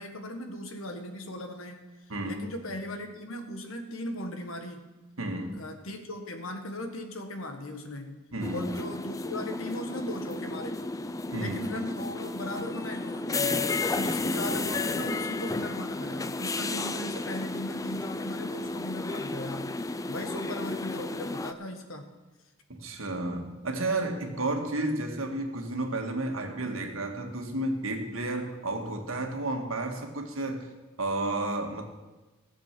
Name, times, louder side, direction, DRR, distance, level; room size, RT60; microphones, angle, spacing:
voice 1, 0.0-1.8 2.2-4.8 5.5-8.2 8.5-10.8 11.3-22.1, left 1 dB, 75° left, 6 dB, 1.6 m, -38 dB
voice 2, 2.1-2.5 5.2-5.6 8.3-8.7 11.3-11.6 22.7-30.7 31.0-31.8, right 2 dB, 75° right, 3 dB, 1.7 m, -32 dB
sound 1, 8.4-21.5, left 3 dB, 15° left, 0.4 m, -32 dB
17.0 x 7.4 x 6.0 m, 1.2 s
head